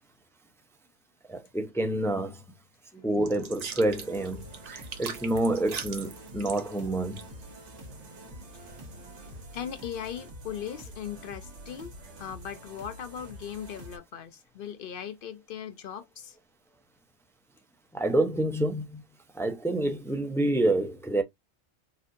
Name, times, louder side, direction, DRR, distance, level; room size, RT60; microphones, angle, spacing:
voice 1, 1.3-2.4 3.0-7.2 17.9-19.0 19.3-21.2, right 1 dB, 5° left, 0.3 m, -28 dB
sound 1, 3.2-9.4, right 6 dB, 45° right, 0.6 m, -43 dB
sound 2, 3.9-14.0, equal, 75° right, 1.4 m, -47 dB
voice 2, 9.5-11.9 12.2-16.4, left 9 dB, 60° left, 0.7 m, -38 dB
4.1 x 2.7 x 2.5 m
omnidirectional pair, 1.1 m